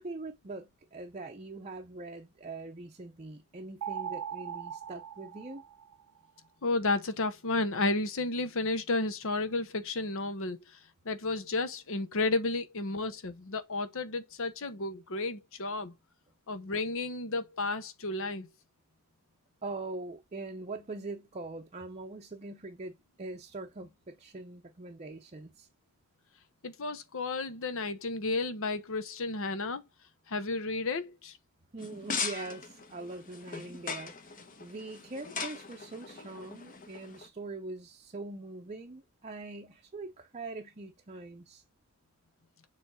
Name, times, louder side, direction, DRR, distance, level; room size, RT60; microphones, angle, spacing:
voice 1, 0.0-5.6 19.6-25.7 31.7-41.6, right 2 dB, 30° right, 0.6 m, -42 dB
sound 1, 3.8-6.3, right 8 dB, 75° right, 0.4 m, -40 dB
voice 2, 6.6-10.8 11.0-15.9 16.5-18.5 26.6-29.8 30.3-31.4, left 3 dB, 60° left, 0.9 m, -32 dB
sound 2, 31.8-37.3, left 5 dB, 40° left, 1.0 m, -40 dB
6.9 x 3.2 x 5.4 m
head